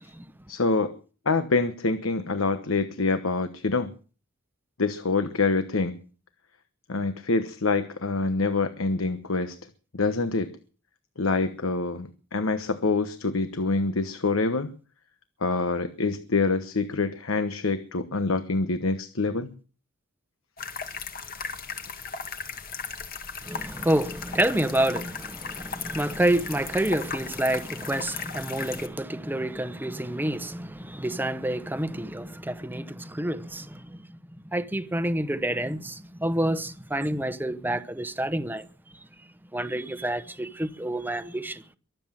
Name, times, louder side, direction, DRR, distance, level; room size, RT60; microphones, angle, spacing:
voice 1, 0.5-0.9 1.2-3.9 4.8-6.0 6.9-9.6 9.9-10.5 11.2-14.7 15.4-19.5, left 3 dB, 70° left, 1.2 m, -26 dB
sound 1, 20.6-28.9, left 5 dB, 45° left, 1.9 m, -37 dB
voice 2, 23.4-34.0 34.4-38.7 39.5-41.8, right 1 dB, 10° right, 1.0 m, -28 dB
23.5 x 8.0 x 7.5 m
head